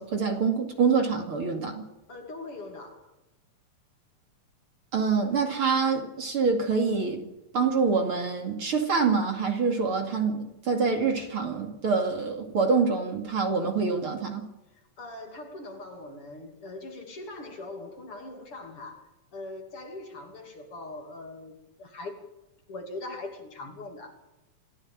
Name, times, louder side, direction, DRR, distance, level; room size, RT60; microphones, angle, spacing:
voice 1, 0.0-1.8 4.9-7.2 7.5-14.5, right 5 dB, 45° right, 3.0 m, -26 dB
voice 2, 2.1-3.1 14.7-22.2 22.7-24.2, left 2 dB, 45° left, 3.5 m, -41 dB
26.5 x 15.0 x 7.5 m
omnidirectional pair, 3.6 m